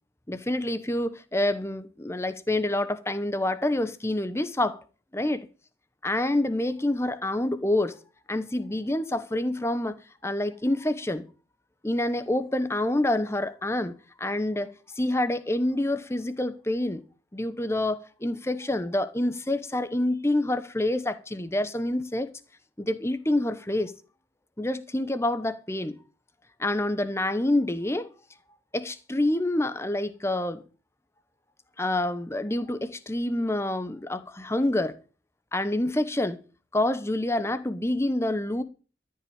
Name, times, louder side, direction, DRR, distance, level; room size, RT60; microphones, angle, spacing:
voice 1, 0.3-4.8 5.1-5.5 6.0-7.9 8.3-11.3 11.8-17.0 17.3-22.3 22.8-23.9 24.6-25.9 26.6-28.1 28.7-30.6 31.8-34.9 35.5-36.4 36.7-38.6, left 1 dB, 15° left, 1.0 m, -27 dB
13.5 x 5.7 x 8.8 m
head